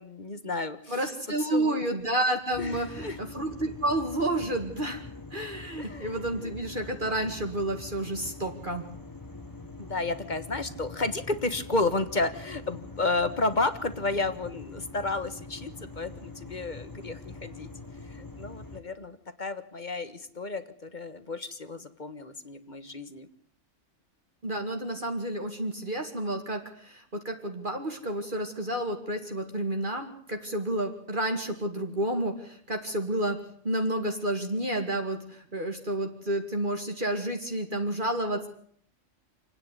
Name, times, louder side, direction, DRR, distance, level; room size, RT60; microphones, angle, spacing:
voice 1, 0.0-1.0 1.5-1.8 2.6-3.2 5.8-6.5 9.8-17.7 18.1-23.3, left 3 dB, 35° left, 10 dB, 1.6 m, -32 dB
voice 2, 0.9-5.0 5.3-8.8 24.4-38.5, right 1 dB, 40° right, 4 dB, 2.3 m, -30 dB
sound 1, 2.5-18.8, left 3 dB, 15° left, 1.9 m, -44 dB
28.0 x 9.9 x 9.9 m, 0.63 s
omnidirectional pair, 1.4 m